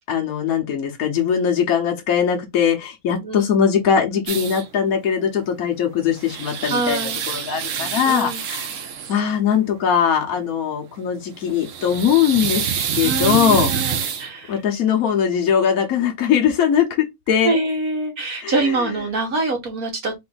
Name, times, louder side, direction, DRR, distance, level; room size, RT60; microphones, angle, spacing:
voice 1, 0.1-8.8 9.1-14.1 14.5-17.6 18.4-18.8, left 8 dB, 80° left, 1.3 m, -21 dB
sound 1, 4.3-4.7 5.9-9.2 11.4-14.3, right 7 dB, 65° right, 1.1 m, -26 dB
voice 2, 6.6-7.2 8.1-8.4 13.0-14.5 17.4-20.2, right 3 dB, 90° right, 1.9 m, -24 dB
4.3 x 2.6 x 3.9 m
omnidirectional pair, 1.5 m